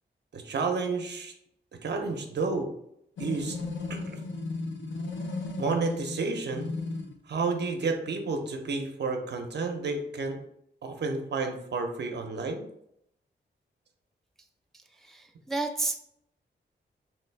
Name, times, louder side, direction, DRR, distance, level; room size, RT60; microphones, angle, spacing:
voice 1, 0.3-1.3 1.8-2.7 3.2-3.6 3.9-4.0 5.6-6.7 7.3-10.4 10.8-12.6, right 4 dB, 65° right, 4 dB, 0.5 m, -30 dB
sound 1, 3.2-7.2, left 3 dB, 85° left, 0.5 m, -35 dB
voice 2, 14.7-16.0, right 3 dB, ahead, 4 dB, 0.3 m, -32 dB
3.0 x 2.3 x 3.2 m, 0.74 s
cardioid pair, 75°, 19 cm